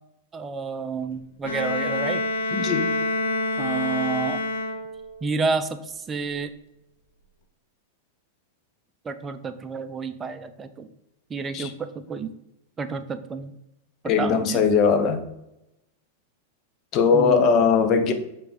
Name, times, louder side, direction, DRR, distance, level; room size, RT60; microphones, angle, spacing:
voice 1, 0.3-2.2 3.6-4.4 5.2-6.5 9.0-10.9 11.3-12.3 12.8-13.5 14.2-14.6 17.1-17.5, right 4 dB, 20° right, 9 dB, 0.6 m, -30 dB
Bowed string instrument, 1.4-5.2, left 2 dB, 65° left, 0.9 m, -27 dB
voice 2, 2.5-2.9 11.5-11.7 14.1-15.2 16.9-18.1, left 5 dB, 35° left, 7 dB, 0.9 m, -20 dB
6.8 x 3.7 x 4.9 m, 0.87 s
figure-of-eight pair, 95°, 0 cm